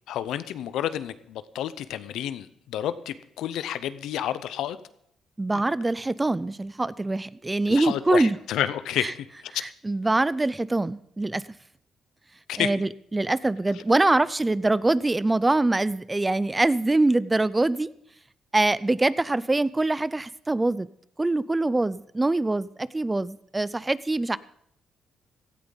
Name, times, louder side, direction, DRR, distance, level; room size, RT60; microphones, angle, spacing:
voice 1, 0.1-4.8 7.7-9.5 12.5-12.7, left 11 dB, 80° left, 14 dB, 0.7 m, -30 dB
voice 2, 5.4-8.4 9.0-9.1 9.6-11.4 12.6-17.9 18.5-20.9 21.2-24.4, right 2 dB, 15° right, 19 dB, 0.4 m, -24 dB
17.0 x 13.5 x 4.0 m, 0.70 s
cardioid pair, 90°, 0 cm